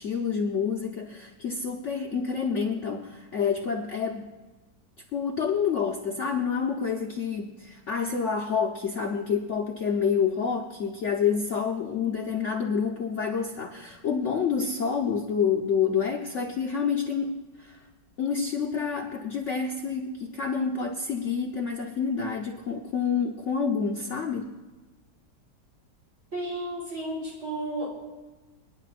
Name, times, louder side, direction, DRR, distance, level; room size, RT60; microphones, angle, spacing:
voice 1, 0.0-4.3 5.1-17.9 18.2-24.5, left 6 dB, 55° left, 2 dB, 0.9 m, -28 dB
voice 2, 26.3-27.9, right 1 dB, 40° right, -4 dB, 3.9 m, -32 dB
28.0 x 9.9 x 2.5 m, 1.2 s
omnidirectional pair, 1.9 m